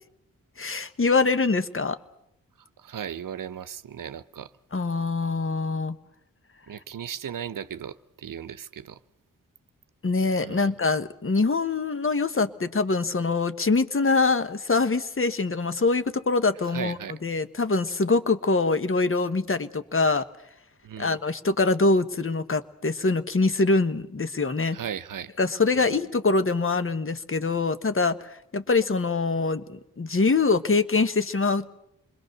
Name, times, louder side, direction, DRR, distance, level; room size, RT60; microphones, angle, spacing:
voice 1, 0.6-2.0 4.7-6.0 10.0-20.2 21.0-24.8 25.4-31.7, left 3 dB, 40° left, 1.3 m, -24 dB
voice 2, 2.8-4.5 6.7-9.0 10.4-10.7 16.7-17.2 20.8-21.2 24.7-25.3 25.8-26.0, right 8 dB, 75° right, 0.8 m, -36 dB
27.5 x 21.5 x 6.6 m
cardioid pair, 65°, 33 cm